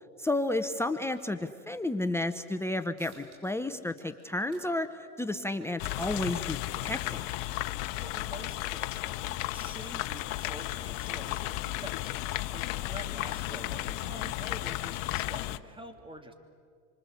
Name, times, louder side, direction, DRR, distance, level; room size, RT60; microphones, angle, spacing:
voice 1, 0.2-6.6 6.8-7.2, left 2 dB, 5° left, 8 dB, 0.8 m, -32 dB
sound 1, 3.0-3.6 3.9-9.0, right 3 dB, 80° right, 7.9 m, -65 dB
sound 2, 5.8-15.6, left 16 dB, 55° left, 1.1 m, -34 dB
voice 2, 8.0-16.3, right 2 dB, 10° right, 6 dB, 2.9 m, -47 dB
26.5 x 25.5 x 8.2 m, 2.1 s
hypercardioid pair, 115°, 43 cm